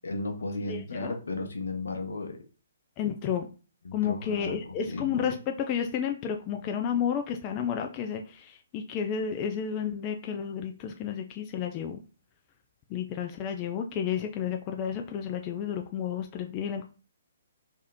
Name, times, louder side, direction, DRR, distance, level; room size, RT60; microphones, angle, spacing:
voice 1, 0.0-2.4 3.8-5.3, left 2 dB, 75° left, 5 dB, 0.9 m, -35 dB
voice 2, 0.7-1.2 3.0-3.5 3.9-12.0 12.9-16.9, left 8 dB, 30° left, 4 dB, 0.4 m, -31 dB
3.4 x 2.8 x 3.5 m, 0.34 s
figure-of-eight pair, 135°, 0 cm